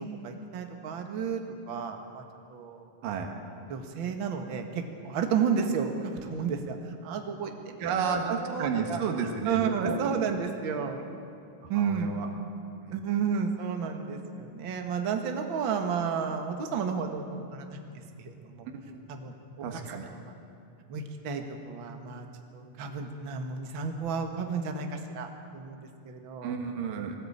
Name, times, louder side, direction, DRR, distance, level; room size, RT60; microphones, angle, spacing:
voice 1, 0.0-1.4 1.7-2.2 2.5-2.9 3.7-8.1 8.4-11.0 11.7-12.2 12.9-18.7 19.1-19.3 20.1-20.3 20.9-22.3 22.5-26.6, right 6 dB, 45° right, 4 dB, 2.0 m, -32 dB
voice 2, 7.8-10.0 11.7-12.3 12.8-12.9 18.9-19.0 19.6-20.1 26.4-27.1, right 6 dB, 80° right, 3 dB, 3.3 m, -31 dB
22.0 x 18.0 x 8.8 m, 2.5 s
omnidirectional pair, 3.9 m